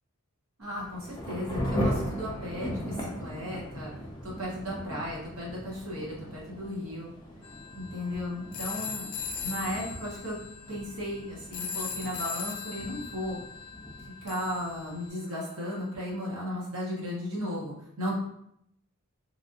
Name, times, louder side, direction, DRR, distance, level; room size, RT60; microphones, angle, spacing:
Thunder / Rain, 0.6-15.1, equal, 20° left, 0.5 m, -38 dB
voice 1, 0.6-3.9 4.2-7.1 7.7-9.1 9.4-10.4 10.7-13.4 14.2-18.2, equal, 65° right, -4 dB, 1.1 m, -35 dB
sound 1, 7.4-15.5, left 6 dB, 85° left, 0.4 m, -40 dB
3.3 x 2.6 x 2.5 m, 0.73 s
head